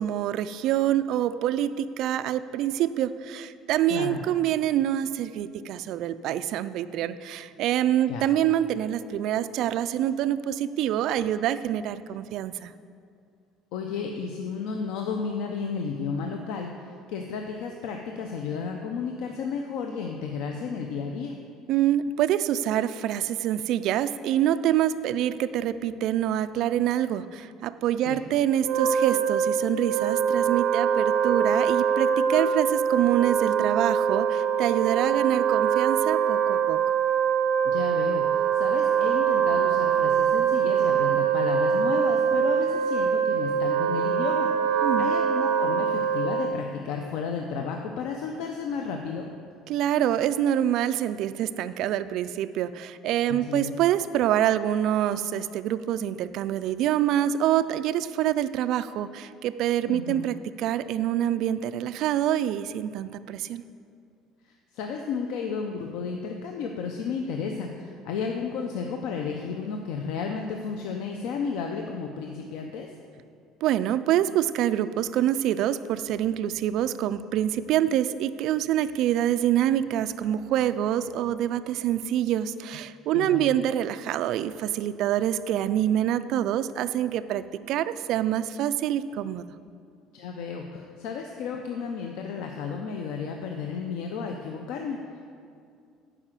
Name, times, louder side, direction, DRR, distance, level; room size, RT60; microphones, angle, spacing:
voice 1, 0.0-12.7 21.7-36.8 44.8-45.1 49.7-63.6 73.6-89.5, right 11 dB, 55° right, 12 dB, 0.3 m, -26 dB
voice 2, 3.9-4.2 8.1-8.3 13.7-16.7 17.1-21.3 28.1-28.2 37.6-49.2 53.3-53.7 59.8-60.2 64.5-72.9 83.1-83.5 90.1-95.2, left 5 dB, 70° left, 3 dB, 0.6 m, -33 dB
Wind instrument woodwind instrument, 28.6-46.7, right 7 dB, 75° right, 0.7 m, -24 dB
9.9 x 4.8 x 7.4 m, 2.3 s
cardioid pair, 165°, 0 cm